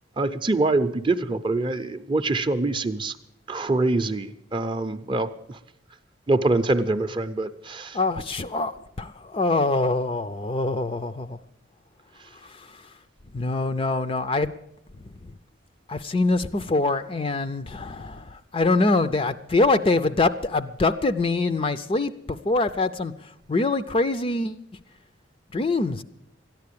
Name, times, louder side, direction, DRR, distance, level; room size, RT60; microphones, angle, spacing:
voice 1, 0.2-3.2 3.5-5.6 6.3-8.0, right 2 dB, 25° right, 0.6 m, -24 dB
voice 2, 7.9-11.4 12.4-12.8 13.3-14.5 15.2-15.3 15.9-24.6 25.5-26.0, left 3 dB, 30° left, 0.4 m, -24 dB
13.5 x 10.5 x 8.4 m
head